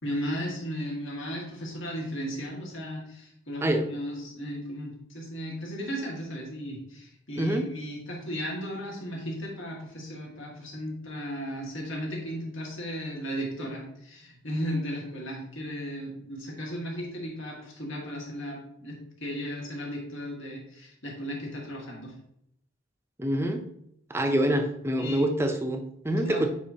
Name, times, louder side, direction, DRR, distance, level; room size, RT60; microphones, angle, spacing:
voice 1, 0.0-22.1 25.0-25.3 26.2-26.5, equal, 65° left, -2 dB, 1.9 m, -35 dB
voice 2, 7.4-7.7 23.2-23.6 24.1-26.5, right 1 dB, 10° right, 5 dB, 0.5 m, -26 dB
8.2 x 4.8 x 2.8 m, 0.74 s
head